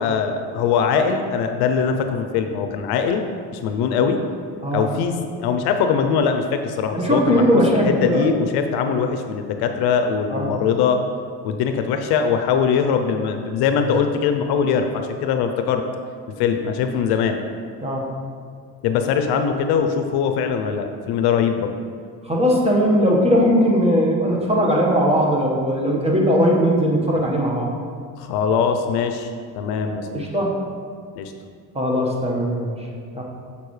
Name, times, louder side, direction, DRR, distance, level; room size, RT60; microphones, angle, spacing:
voice 1, 0.0-3.2 3.5-4.2 4.7-7.5 7.8-11.0 11.4-15.8 16.4-17.4 18.8-21.7 28.2-29.3 29.6-30.3 31.2-31.3, left 6 dB, 75° left, 6 dB, 0.6 m, -21 dB
voice 2, 6.9-8.3 10.3-10.5 17.8-18.1 22.3-27.7 30.1-30.5 31.7-32.7 33.1-33.2, equal, 15° right, -2 dB, 1.4 m, -19 dB
7.0 x 6.8 x 3.2 m, 2.1 s
cardioid pair, 105°, 40 cm